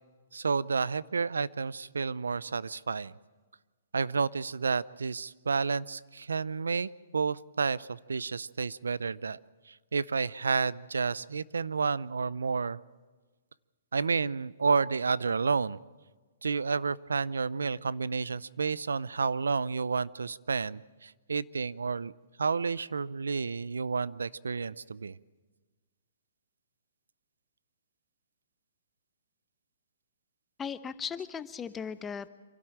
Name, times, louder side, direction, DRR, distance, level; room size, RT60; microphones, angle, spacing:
voice 1, 0.3-3.1 3.9-9.4 9.7-12.8 13.9-15.8 16.4-22.1 22.4-25.2, right 5 dB, 90° right, 20 dB, 0.5 m, -30 dB
voice 2, 30.6-32.3, left 7 dB, 15° left, 13 dB, 0.9 m, -37 dB
26.5 x 12.5 x 8.8 m, 1.3 s
hypercardioid pair, 135°, 0 cm